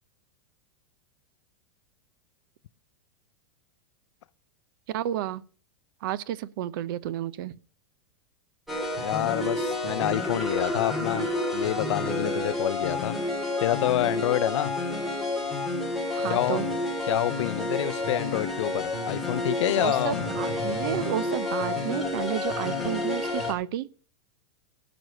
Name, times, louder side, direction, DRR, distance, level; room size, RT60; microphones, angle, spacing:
voice 1, 4.9-5.4 6.0-7.6 16.1-16.7 19.8-23.9, right 12 dB, 45° right, 0.6 m, -31 dB
sound 1, 8.7-23.5, left 2 dB, ahead, 2.1 m, -29 dB
voice 2, 9.0-13.2 13.6-14.7 16.3-16.6 17.1-20.2, left 14 dB, 80° left, 0.5 m, -28 dB
15.5 x 6.1 x 6.3 m
supercardioid pair, 175°, 15 cm